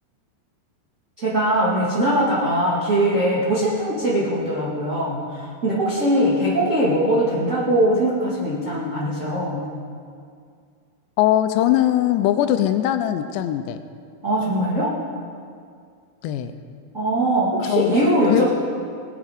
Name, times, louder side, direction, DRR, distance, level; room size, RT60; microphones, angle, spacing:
voice 1, 1.2-9.6 14.2-14.9 16.9-18.5, right 1 dB, 35° right, -8 dB, 1.2 m, -21 dB
voice 2, 11.2-13.8 16.2-16.5 17.6-18.4, left 12 dB, 85° left, 9 dB, 2.9 m, -21 dB
21.5 x 7.6 x 5.2 m, 2.2 s
omnidirectional pair, 5.0 m